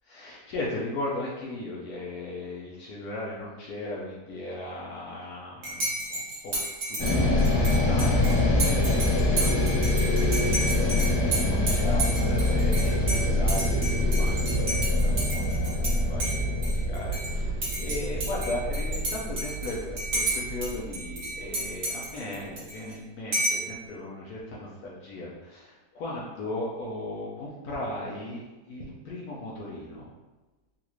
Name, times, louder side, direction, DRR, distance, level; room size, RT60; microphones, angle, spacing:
voice 1, 0.1-6.5 6.9-7.0 7.2-30.1, left 1 dB, 70° left, -5 dB, 1.1 m, -37 dB
Dishes pots and pans / Cutlery silverware / Chink clink, 5.6-15.9 16.2-17.3 17.6-20.7 20.9-22.9 23.3-23.7, right 2 dB, 55° right, 1.5 m, -31 dB
sound 1, 7.0-21.3, left 1 dB, 90° left, 1.4 m, -25 dB
3.9 x 2.5 x 3.0 m, 1.2 s
omnidirectional pair, 1.8 m